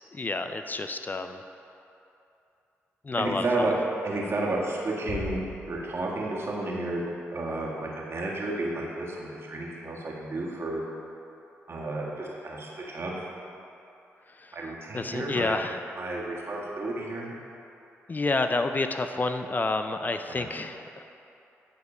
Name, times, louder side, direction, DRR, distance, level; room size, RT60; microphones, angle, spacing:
voice 1, 0.1-1.4 3.0-3.7 14.3-14.6 14.9-15.8 18.1-21.0, left 3 dB, 35° left, 8 dB, 0.4 m, -29 dB
voice 2, 3.2-3.7 4.0-5.4 5.7-7.0 7.3-10.8 11.7-13.3 14.5-15.5 15.9-17.3 20.3-20.5, right 2 dB, 50° right, -4 dB, 1.7 m, -31 dB
Bass drum, 5.1-6.5, left 4 dB, 75° left, 0.9 m, -39 dB
9.7 x 4.3 x 5.4 m, 2.8 s
supercardioid pair, 50°, 5 cm